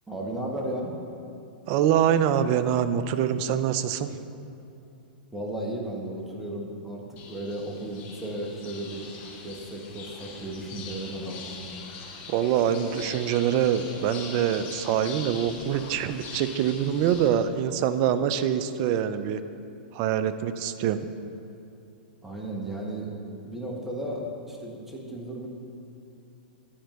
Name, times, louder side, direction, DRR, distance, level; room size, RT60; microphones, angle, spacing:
voice 1, 0.1-0.9 5.3-9.1 9.4-11.5 22.2-23.1 23.4-25.5, right 1 dB, 5° right, -2 dB, 1.3 m, -34 dB
voice 2, 1.7-4.1 12.3-19.4 19.9-21.0, right 9 dB, 45° right, 12 dB, 0.4 m, -25 dB
sound 1, 7.2-17.3, left 4 dB, 35° left, 1.3 m, -42 dB
10.0 x 4.5 x 5.2 m, 2.7 s
hypercardioid pair, 110°, 5 cm